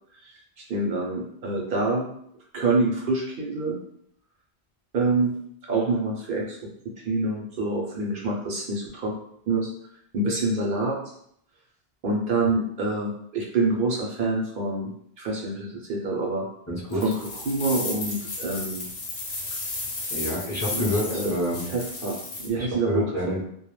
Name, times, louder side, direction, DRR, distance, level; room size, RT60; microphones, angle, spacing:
voice 1, 0.6-2.1 2.5-3.8 4.9-5.4 5.6-9.1 9.5-9.7 10.1-11.0 12.0-14.9 15.2-16.5 17.0-17.1 17.5-18.9 20.7-21.3 21.7-23.5, right 2 dB, 65° right, -2 dB, 0.7 m, -26 dB
voice 2, 16.7-17.0 20.1-21.7 22.6-23.4, left 1 dB, 20° left, -7 dB, 0.5 m, -28 dB
sound 1, 16.9-22.5, left 2 dB, 90° left, 0.9 m, -33 dB
2.2 x 2.1 x 3.0 m, 0.69 s
omnidirectional pair, 1.0 m